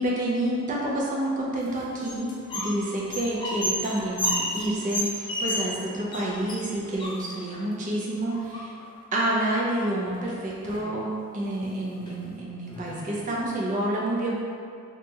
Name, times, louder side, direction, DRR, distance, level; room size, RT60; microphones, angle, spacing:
voice 1, 0.0-8.7 9.1-14.4, right 1 dB, 40° right, -5 dB, 0.5 m, -28 dB
sound 1, 1.6-2.8 3.0-5.8 6.1-6.2 6.5-7.6 8.3-9.0 10.1-10.2 10.5-11.0 11.4-11.7 12.1-12.2 12.7-13.5, equal, 20° left, 0.3 m, -32 dB
2.9 x 2.3 x 2.7 m, 2.3 s
head